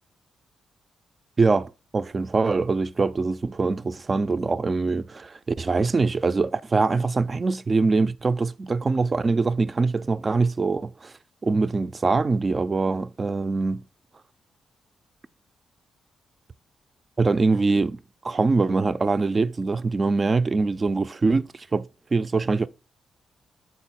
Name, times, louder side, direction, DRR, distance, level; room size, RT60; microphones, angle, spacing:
voice 1, 1.4-11.1 11.4-13.8 17.2-18.0 18.2-22.7, right 3 dB, 30° right, 0.3 m, -23 dB
7.3 x 4.1 x 4.2 m
cardioid pair, 110°, 0 cm